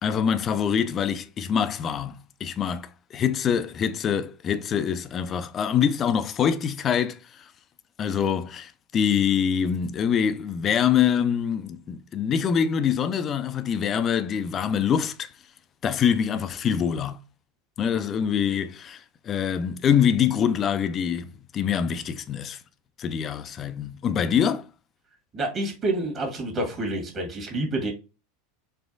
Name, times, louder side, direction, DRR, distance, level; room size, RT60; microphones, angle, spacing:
voice 1, 0.0-7.5 8.0-15.3 15.8-17.2 17.8-22.6 23.0-24.7, left 8 dB, 30° left, 0.4 m, -25 dB
voice 2, 25.3-27.9, right 2 dB, 35° right, 1.3 m, -28 dB
4.4 x 2.4 x 2.5 m
figure-of-eight pair, 80°, 0 cm